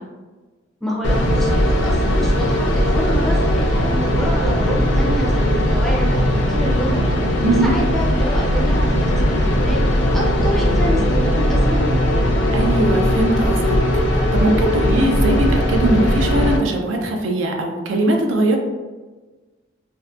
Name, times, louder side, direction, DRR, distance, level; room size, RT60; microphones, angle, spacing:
voice 1, 0.8-9.8 10.1-11.9, equal, ahead, -3 dB, 0.4 m, -27 dB
sound 1, 1.0-16.6, equal, 65° left, 0.4 m, -18 dB
sound 2, 1.6-14.8, equal, 30° right, 0.7 m, -33 dB
voice 2, 12.5-13.7 14.1-18.6, right 1 dB, 80° right, 2 dB, 0.4 m, -20 dB
2.6 x 2.1 x 2.3 m, 1.2 s
head